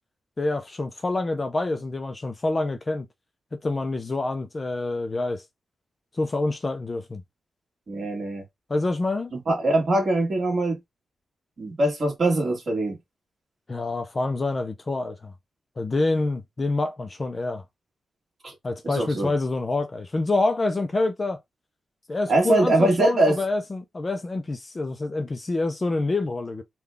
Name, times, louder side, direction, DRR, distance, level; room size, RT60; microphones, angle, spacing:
voice 1, 0.4-3.1 3.5-5.4 6.2-7.2 8.7-9.3 13.7-15.3 15.8-17.6 18.6-21.4 22.1-26.6, left 2 dB, 25° left, 0.4 m, -27 dB
voice 2, 7.9-8.4 9.3-10.8 11.6-13.0 18.4-18.5 18.8-19.3 22.3-23.4, right 2 dB, 45° right, 1.6 m, -22 dB
3.7 x 2.2 x 3.4 m
wide cardioid pair, 155°, 0 cm